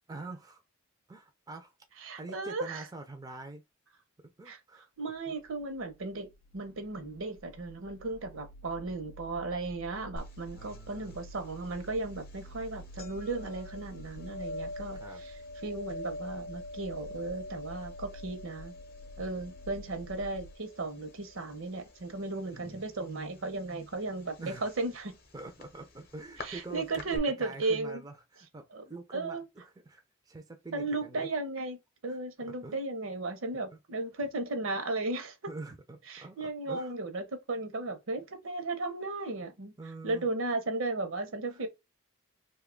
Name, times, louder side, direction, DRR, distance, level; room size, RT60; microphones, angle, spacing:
voice 1, 0.1-0.6 1.1-1.7 2.2-3.6 4.4-4.9 5.3-5.4 10.5-11.2 15.0-15.2 22.5-22.8 24.4-24.7 25.3-31.3 32.1-32.8 33.7-33.8 35.5-36.9 39.8-40.3 41.5-41.6, right 2 dB, 15° right, 0.4 m, -45 dB
voice 2, 2.0-2.8 4.5-4.6 5.0-15.3 15.6-18.7 19.2-25.1 26.4-28.0 28.7-28.8 29.1-29.4 30.7-35.4 36.1-39.7 40.0-41.7, right 2 dB, 70° right, 0.8 m, -35 dB
sound 1, 5.3-20.6, equal, 85° left, 0.3 m, -50 dB
sound 2, 10.2-27.2, left 1 dB, 45° left, 0.7 m, -46 dB
2.7 x 2.3 x 3.6 m
head